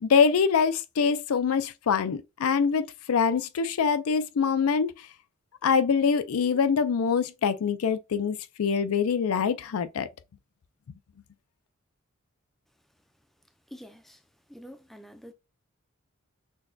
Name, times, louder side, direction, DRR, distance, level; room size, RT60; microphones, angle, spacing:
voice 1, 0.0-4.9 5.6-10.1, left 6 dB, 80° left, 0.4 m, -24 dB
voice 2, 13.7-14.2 14.5-15.3, equal, ahead, 0.4 m, -46 dB
6.1 x 2.2 x 2.6 m
head